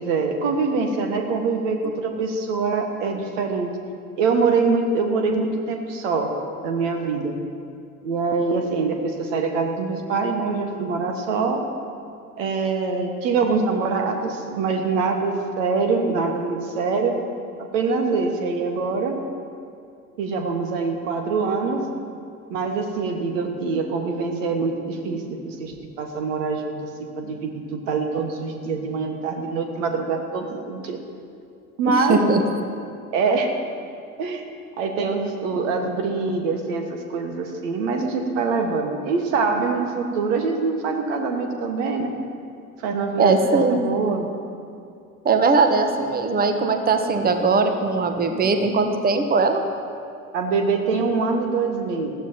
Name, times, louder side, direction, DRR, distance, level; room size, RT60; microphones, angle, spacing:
voice 1, 0.0-3.7 4.2-6.3 6.6-7.3 8.0-11.6 12.4-17.2 17.6-19.1 20.2-21.8 22.5-26.9 27.2-31.0 31.8-32.2 33.1-33.5 34.2-34.4 34.8-42.1 42.8-44.3 50.3-52.1, right 4 dB, 60° right, 4 dB, 1.6 m, -24 dB
voice 2, 31.8-32.4 43.2-43.8 45.2-49.6, right 4 dB, 20° right, 7 dB, 1.1 m, -20 dB
19.5 x 14.0 x 2.9 m, 2.4 s
figure-of-eight pair, 65°, 43 cm